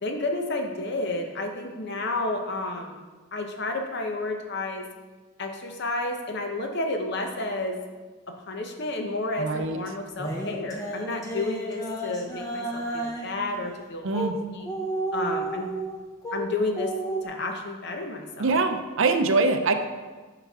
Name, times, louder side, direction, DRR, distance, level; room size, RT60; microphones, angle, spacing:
voice 1, 0.0-3.0 3.3-4.8 5.4-7.8 8.5-14.7 15.1-15.7 16.3-16.9 17.2-18.6, left 2 dB, 50° left, 4 dB, 0.8 m, -31 dB
voice 2, 9.4-9.8 14.0-14.3 18.4-19.7, right 3 dB, 60° right, 7 dB, 0.5 m, -23 dB
sound 1, 10.2-13.4 14.1-14.3 14.6-16.4 16.8-17.3, right 2 dB, 15° left, 0.8 m, -32 dB
8.0 x 5.8 x 3.5 m, 1.3 s
head